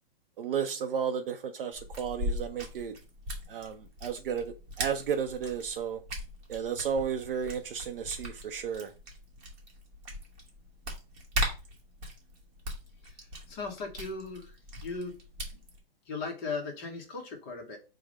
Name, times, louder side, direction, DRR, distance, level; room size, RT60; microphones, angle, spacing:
voice 1, 0.4-3.0 3.5-6.0 6.5-8.9, right 7 dB, 65° right, 0.5 m, -33 dB
sound 1, 1.7-15.8, equal, 25° right, 0.9 m, -39 dB
voice 2, 13.5-14.6 14.8-15.1 16.1-17.8, left 4 dB, 20° left, 0.7 m, -37 dB
4.6 x 2.1 x 4.6 m
hypercardioid pair, 155°, 30 cm